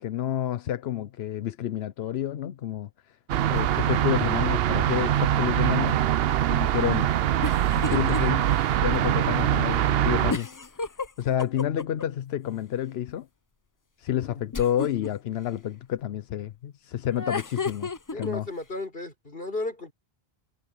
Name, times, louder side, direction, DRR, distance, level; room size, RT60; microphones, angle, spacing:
voice 1, 0.0-3.2 3.5-6.2 6.5-7.1 7.7-10.7 11.2-13.3 14.0-18.5, left 11 dB, 85° left, 0.9 m, -29 dB
sound 1, 3.3-10.3, right 11 dB, 70° right, 0.8 m, -23 dB
sound 2, 7.4-8.2 8.6-8.7 10.3-12.0 14.5-15.1 17.1-18.3, left 4 dB, 25° left, 0.5 m, -31 dB
voice 2, 14.1-14.4 18.1-19.9, left 2 dB, 65° left, 4.5 m, -34 dB
omnidirectional pair, 1.0 m